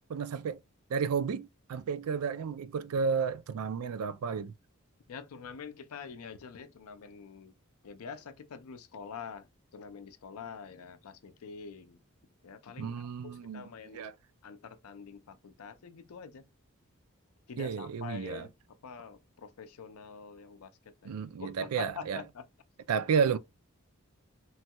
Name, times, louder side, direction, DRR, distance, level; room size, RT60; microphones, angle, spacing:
voice 1, 0.1-0.6 0.9-4.5 12.8-13.6 13.9-14.1 17.6-18.5 21.0-22.2 22.9-23.4, right 6 dB, 85° right, 0.4 m, -32 dB
voice 2, 5.1-7.5 7.8-9.5 9.7-12.0 12.4-14.1 14.4-16.4 17.5-18.5 18.8-22.5, left 6 dB, 80° left, 0.5 m, -46 dB
3.1 x 2.2 x 2.8 m
head